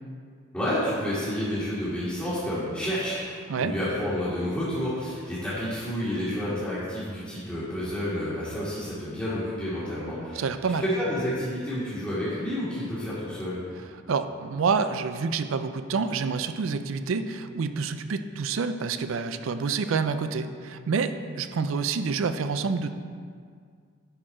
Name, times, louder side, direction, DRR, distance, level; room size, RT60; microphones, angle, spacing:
voice 1, 0.5-10.4 10.8-13.6, equal, 10° left, -14 dB, 2.2 m, -30 dB
voice 2, 10.3-10.9 14.1-22.9, right 5 dB, 85° right, 10 dB, 0.4 m, -28 dB
11.0 x 4.5 x 4.3 m, 2.1 s
head